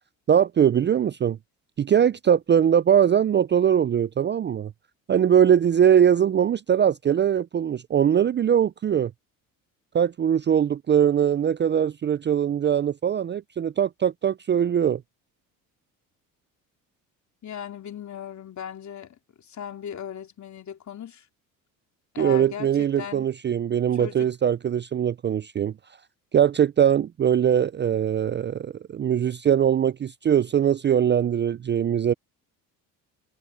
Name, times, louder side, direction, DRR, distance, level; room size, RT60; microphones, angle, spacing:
voice 1, 0.3-1.4 1.8-4.7 5.1-9.1 9.9-15.0 22.2-25.7 26.3-32.1, right 9 dB, 30° right, 0.5 m, -21 dB
voice 2, 17.4-21.3 22.1-23.3 23.9-24.3, left 8 dB, 45° left, 3.3 m, -37 dB
supercardioid pair, 80°, 40 cm